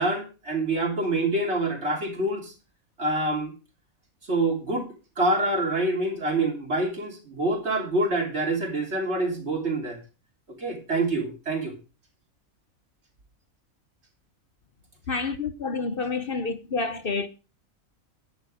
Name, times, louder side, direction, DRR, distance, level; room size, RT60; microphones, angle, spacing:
voice 1, 0.0-2.5 3.0-3.5 4.3-10.0 10.6-11.7, right 2 dB, 50° right, 3.2 m, -26 dB
voice 2, 15.1-17.3, left 4 dB, 45° left, 1.0 m, -28 dB
10.5 x 8.0 x 5.0 m
omnidirectional pair, 1.5 m